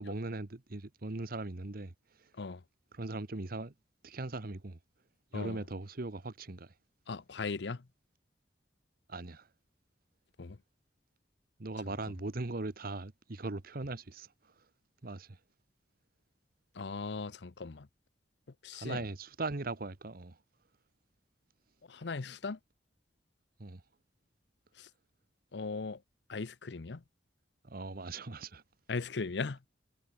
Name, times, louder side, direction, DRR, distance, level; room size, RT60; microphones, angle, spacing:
voice 1, 0.0-1.9 2.9-3.7 4.0-4.8 5.3-6.7 9.1-9.5 11.6-14.3 15.0-15.4 18.7-20.4 23.6-23.8 27.6-28.6, right 2 dB, 55° right, 1.2 m, -39 dB
voice 2, 5.3-5.6 7.1-7.9 10.4-10.6 11.9-12.0 16.7-17.9 18.6-19.0 21.9-22.6 24.8-24.9 25.5-26.0 26.3-27.0 28.9-29.6, left 4 dB, 70° left, 0.7 m, -38 dB
head